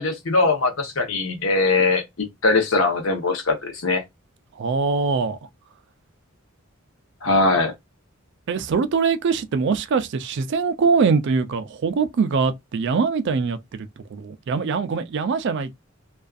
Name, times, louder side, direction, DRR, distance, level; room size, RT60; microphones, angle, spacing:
voice 1, 0.0-4.0 7.2-7.7, left 3 dB, 70° left, 0.8 m, -21 dB
voice 2, 4.6-5.4 8.5-15.7, right 5 dB, 60° right, 0.4 m, -23 dB
2.5 x 2.3 x 2.3 m
head